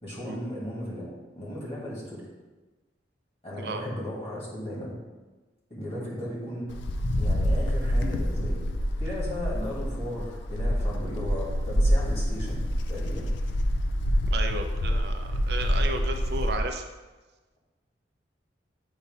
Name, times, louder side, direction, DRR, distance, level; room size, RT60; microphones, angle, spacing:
voice 1, 0.0-1.1 1.4-2.2 3.4-5.0 5.7-6.7 7.1-13.3, left 1 dB, 30° left, -5 dB, 1.9 m, -36 dB
Wind, 6.7-16.7, equal, 80° left, 0.5 m, -27 dB
voice 2, 14.3-16.8, right 3 dB, 60° right, 5 dB, 0.5 m, -33 dB
8.1 x 2.9 x 5.4 m, 1.2 s
head